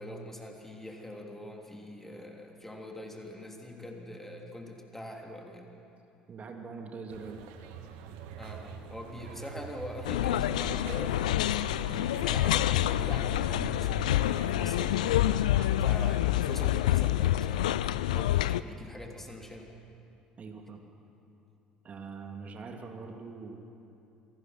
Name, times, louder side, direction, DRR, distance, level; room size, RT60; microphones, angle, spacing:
voice 1, 0.0-5.7 8.4-11.4 11.8-15.3 15.8-17.7 18.1-19.7, left 1 dB, 10° left, 1 dB, 3.2 m, -43 dB
voice 2, 6.3-7.4 20.4-20.8 21.8-23.7, right 4 dB, 35° right, 3 dB, 2.6 m, -43 dB
sound 1, 7.1-16.2, right 7 dB, 60° right, 1.4 m, -44 dB
sound 2, 10.0-18.6, left 13 dB, 70° left, 0.4 m, -27 dB
27.0 x 18.5 x 6.0 m, 2.7 s
figure-of-eight pair, 60°, 4 cm